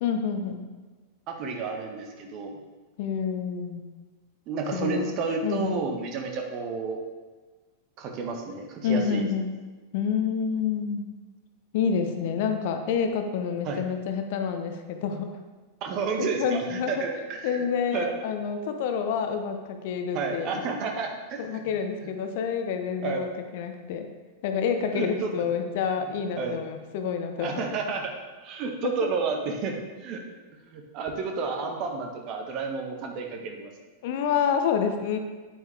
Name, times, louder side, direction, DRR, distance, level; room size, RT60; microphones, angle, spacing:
voice 1, 0.0-0.6 3.0-3.9 4.7-5.1 5.4-5.8 8.8-9.5 9.9-11.1 11.7-15.4 16.2-17.0 17.4-20.5 21.4-24.1 24.4-27.5 34.0-35.2, left 6 dB, 50° left, 6 dB, 0.9 m, -28 dB
voice 2, 1.3-2.6 4.5-7.0 8.0-9.2 13.6-13.8 15.8-17.7 17.9-18.1 20.1-21.6 22.0-22.1 23.0-23.2 24.9-25.3 26.4-26.6 27.4-30.2 30.7-33.7, right 4 dB, 40° right, 3 dB, 1.4 m, -31 dB
9.2 x 8.8 x 3.5 m, 1.3 s
figure-of-eight pair, 90°, 0 cm